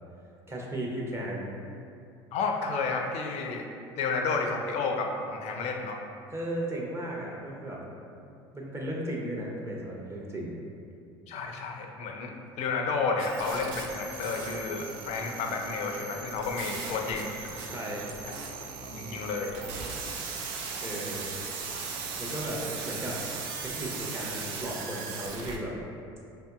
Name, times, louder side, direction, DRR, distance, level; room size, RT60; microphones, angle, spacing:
voice 1, 0.5-1.5 6.3-7.8 8.5-10.6 17.7-18.1 20.8-21.3 22.2-23.2 23.6-25.8, right 1 dB, 20° right, -3 dB, 0.9 m, -35 dB
voice 2, 2.3-3.7 4.0-6.0 11.3-17.3 18.8-19.5, left 4 dB, 55° left, 2 dB, 0.5 m, -31 dB
sound 1, 13.2-25.6, right 5 dB, 70° right, 0.5 m, -38 dB
5.1 x 2.7 x 2.4 m, 2.5 s
hypercardioid pair, 65°, 13 cm